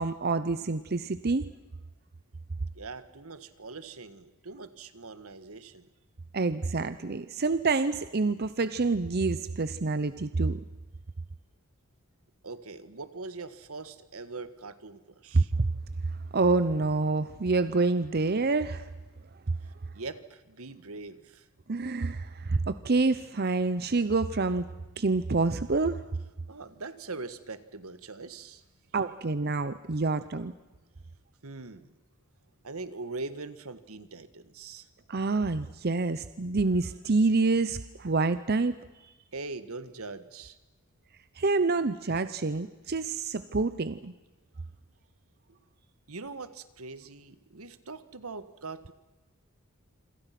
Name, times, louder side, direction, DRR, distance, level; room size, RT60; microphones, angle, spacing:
voice 1, 0.0-1.5 6.3-10.6 15.3-15.7 16.3-18.9 21.7-24.7 25.0-26.0 28.9-30.5 35.1-38.7 39.0-39.1 41.4-44.1, right 3 dB, 45° right, 13 dB, 0.7 m, -27 dB
voice 2, 2.7-5.9 12.4-15.5 19.6-21.5 26.5-28.6 31.4-31.9 32.6-34.9 39.3-40.6 45.5-45.6 46.1-48.9, right 3 dB, 75° right, 12 dB, 1.6 m, -42 dB
27.5 x 26.0 x 6.0 m, 1.2 s
head